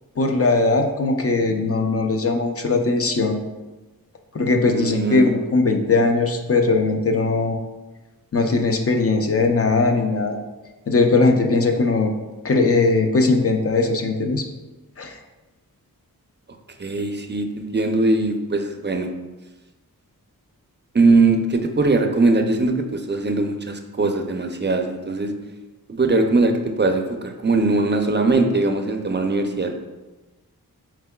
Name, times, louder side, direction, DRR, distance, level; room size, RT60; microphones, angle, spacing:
voice 1, 0.2-3.4 4.3-7.6 8.3-10.4 10.9-12.1 12.4-14.4 15.0-15.2, left 3 dB, 40° left, 4 dB, 0.5 m, -19 dB
voice 2, 4.6-5.3 16.8-19.1 20.9-25.3 25.9-29.8, right 3 dB, 30° right, 5 dB, 0.4 m, -20 dB
4.6 x 3.6 x 2.2 m, 1.1 s
wide cardioid pair, 50°, 36 cm